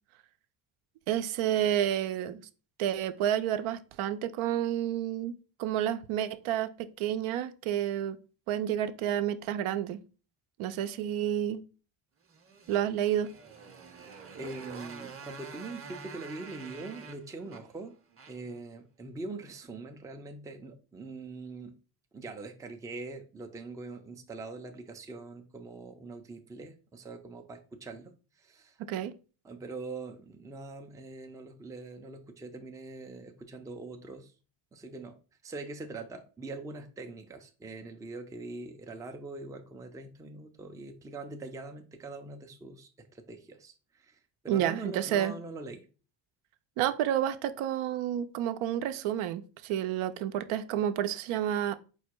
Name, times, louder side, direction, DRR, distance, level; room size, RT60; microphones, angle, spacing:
voice 1, 1.1-2.5 2.8-8.2 8.5-10.0 10.6-11.6 12.7-13.3 28.8-29.1 44.5-45.4 46.8-51.7, right 11 dB, 75° right, 0.6 m, -30 dB
Motorcycle, 12.2-18.6, right 5 dB, 25° right, 0.7 m, -47 dB
voice 2, 14.4-17.9 18.3-21.7 22.1-28.1 28.4-28.8 29.4-34.3 34.7-35.2 35.4-44.2 44.4-45.8, right 3 dB, 10° right, 0.4 m, -43 dB
4.7 x 2.2 x 4.4 m
cardioid pair, 100°, 50 cm